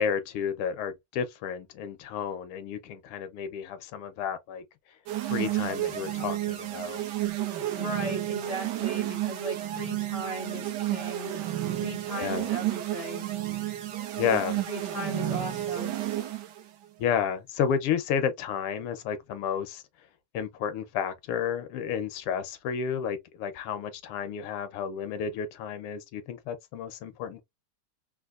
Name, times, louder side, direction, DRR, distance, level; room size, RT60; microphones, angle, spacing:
voice 1, 0.0-4.6 5.3-7.0 12.2-12.5 14.2-14.6 17.0-19.8 20.3-27.4, left 7 dB, 85° left, 1.6 m, -31 dB
sound 1, 5.1-16.6, right 13 dB, 70° right, 1.1 m, -31 dB
voice 2, 7.8-11.5 11.8-13.2 14.7-16.0, right 1 dB, 35° right, 0.5 m, -37 dB
4.2 x 2.5 x 2.4 m
omnidirectional pair, 2.4 m